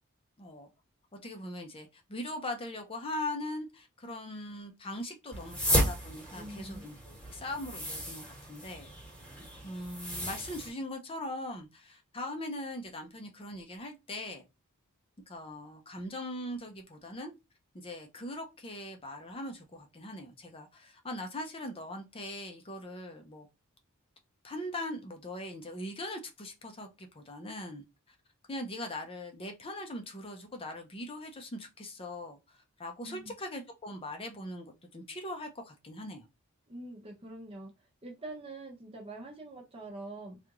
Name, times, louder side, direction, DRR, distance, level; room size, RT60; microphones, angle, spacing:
voice 1, 0.4-0.7 1.2-8.9 9.6-14.4 15.3-17.3 17.7-23.5 24.4-27.8 28.5-36.3, left 1 dB, 25° left, 0.6 m, -41 dB
sound 1, 5.3-10.7, equal, 5° left, 1.2 m, -34 dB
voice 2, 6.3-6.9 33.0-33.3 36.7-37.7 38.0-40.4, right 2 dB, 25° right, 0.7 m, -44 dB
3.5 x 2.4 x 2.9 m
head